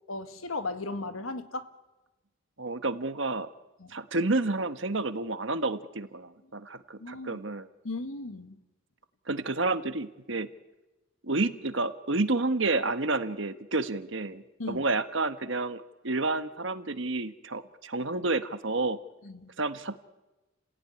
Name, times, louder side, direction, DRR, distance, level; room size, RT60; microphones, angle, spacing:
voice 1, 0.1-1.7 3.8-3.9 7.0-7.4 7.8-8.5 14.6-14.8 19.2-19.5, left 2 dB, 90° left, 1.7 m, -36 dB
voice 2, 2.6-3.5 3.9-7.7 9.3-10.5 11.2-14.4 14.7-19.0 19.6-20.0, right 3 dB, 65° right, 1.3 m, -30 dB
30.0 x 16.5 x 9.8 m
head